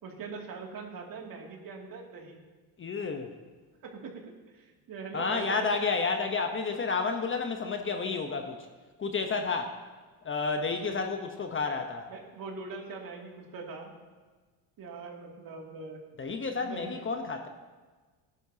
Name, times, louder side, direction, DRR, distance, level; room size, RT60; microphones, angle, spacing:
voice 1, 0.0-2.4 3.8-4.1 4.5-5.7 12.1-13.9 14.8-16.0 16.6-16.9, right 4 dB, 45° right, 0 dB, 2.5 m, -42 dB
voice 2, 2.8-3.3 5.1-8.7 9.0-9.8 10.2-12.1 16.2-17.5, left 4 dB, 25° left, 5 dB, 0.9 m, -31 dB
17.0 x 10.5 x 2.8 m, 1.4 s
supercardioid pair, 105°, 45 cm